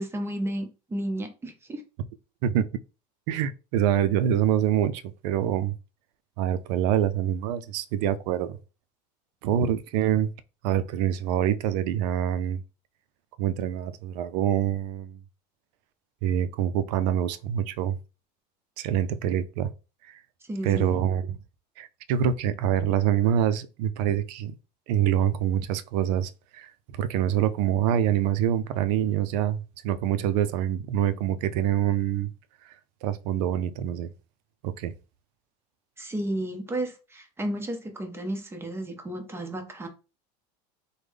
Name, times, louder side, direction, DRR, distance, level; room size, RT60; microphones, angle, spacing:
voice 1, 0.0-1.8 20.5-21.0 36.0-39.9, right 1 dB, 10° right, 0.7 m, -32 dB
voice 2, 3.3-5.7 6.4-8.6 9.4-10.3 10.6-12.6 13.4-15.2 16.2-18.0 18.8-19.7 20.1-20.2 20.6-21.4 21.8-24.5 24.9-32.3 33.0-34.1 34.6-34.9, right 10 dB, 75° right, 0.4 m, -25 dB
3.2 x 2.1 x 3.4 m
supercardioid pair, 120°, 21 cm